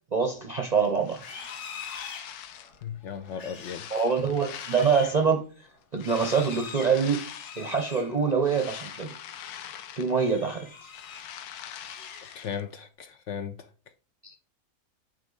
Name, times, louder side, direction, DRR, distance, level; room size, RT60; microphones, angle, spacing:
voice 1, 0.1-1.2 3.9-5.4 5.9-7.2 7.6-9.1 10.0-10.7 14.2-14.3, right 5 dB, 45° right, 0.5 m, -25 dB
sound 1, 0.8-2.8 3.3-5.3 5.9-7.8 8.2-10.4 10.7-12.6, left 10 dB, 90° left, 1.2 m, -43 dB
Livestock farm animals working animals, 1.1-9.0 9.4-9.7 10.1-11.4 11.7-12.7, left 5 dB, 50° left, 1.4 m, -45 dB
voice 2, 2.8-3.8 12.3-13.6, left 8 dB, 65° left, 0.7 m, -36 dB
8.8 x 3.4 x 3.8 m
omnidirectional pair, 1.6 m